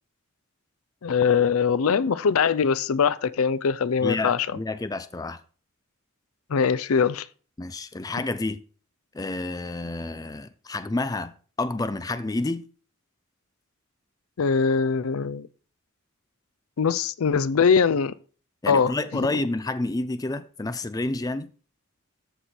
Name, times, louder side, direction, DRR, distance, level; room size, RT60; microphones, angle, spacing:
voice 1, 1.0-4.6 6.5-7.3 14.4-15.5 16.8-18.1 18.7-18.9, left 6 dB, 80° left, 0.5 m, -22 dB
voice 2, 4.0-5.4 7.6-8.6 9.1-11.3 11.6-12.6 18.6-21.5, left 2 dB, 15° left, 0.4 m, -29 dB
13.5 x 4.6 x 4.4 m
head